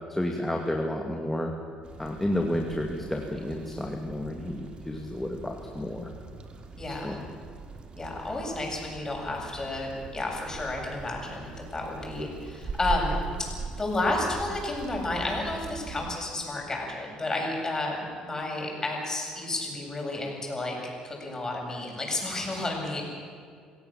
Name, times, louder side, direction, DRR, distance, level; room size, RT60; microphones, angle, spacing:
voice 1, 0.1-1.5 2.0-6.1 6.9-7.2, left 1 dB, 10° left, 1 dB, 2.3 m, -31 dB
sound 1, 1.8-16.2, right 4 dB, 40° right, 2.6 m, -40 dB
voice 2, 6.8-7.1 8.0-13.5 13.8-20.8 21.0-23.0, left 2 dB, 25° left, 0 dB, 7.9 m, -31 dB
26.5 x 16.5 x 7.5 m, 2.2 s
supercardioid pair, 80°, 3 cm